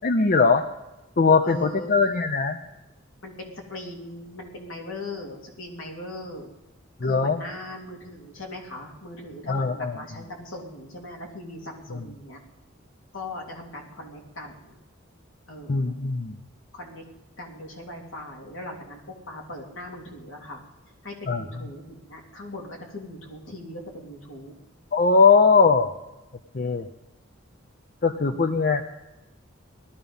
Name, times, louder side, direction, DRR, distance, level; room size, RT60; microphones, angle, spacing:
voice 1, 0.0-0.6 1.2-2.6 7.0-7.4 9.5-10.0 11.9-12.0 15.7-16.4 21.3-21.4 24.9-25.9 26.5-26.9 28.0-28.8, left 4 dB, 45° left, 8 dB, 0.6 m, -20 dB
voice 2, 1.4-1.9 3.2-6.5 7.0-12.4 13.1-14.7 15.5-15.9 16.7-17.0 17.4-20.6 21.0-24.5, left 1 dB, 80° left, 0 dB, 3.0 m, -39 dB
18.0 x 12.5 x 5.4 m, 0.99 s
head